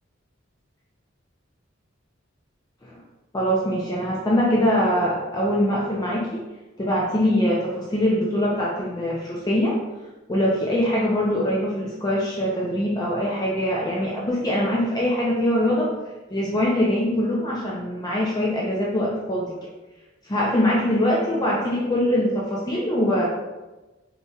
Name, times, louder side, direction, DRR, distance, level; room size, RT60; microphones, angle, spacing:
voice 1, 3.3-6.4 6.8-9.8 10.3-15.9 16.3-19.5 20.3-23.3, equal, 20° left, -4 dB, 0.5 m, -23 dB
5.3 x 3.1 x 2.3 m, 1.1 s
head